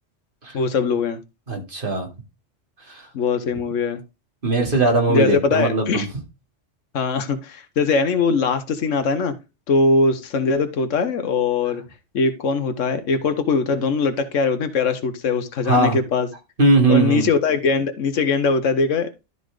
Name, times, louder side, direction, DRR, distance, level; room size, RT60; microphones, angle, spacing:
voice 1, 0.5-1.2 3.1-4.0 5.1-6.1 6.9-9.3 9.7-11.8 12.1-16.3 16.9-19.1, left 4 dB, 90° left, 1.3 m, -21 dB
voice 2, 1.5-2.1 2.9-3.1 4.4-6.0 15.6-16.0 16.6-17.3, right 2 dB, 45° right, 2.6 m, -19 dB
12.0 x 4.1 x 4.8 m
omnidirectional pair, 1.3 m